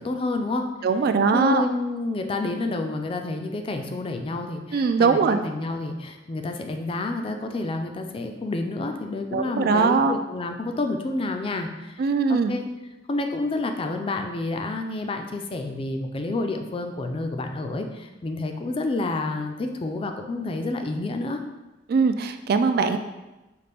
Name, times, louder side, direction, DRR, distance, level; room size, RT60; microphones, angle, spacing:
voice 1, 0.0-0.7 1.3-12.0 12.3-12.7 13.1-21.4, left 2 dB, 30° left, 5 dB, 0.4 m, -29 dB
voice 2, 0.8-1.7 4.7-5.4 9.3-10.1 12.0-12.5 21.9-23.0, right 4 dB, 55° right, 9 dB, 0.3 m, -21 dB
5.2 x 2.5 x 3.3 m, 1.1 s
head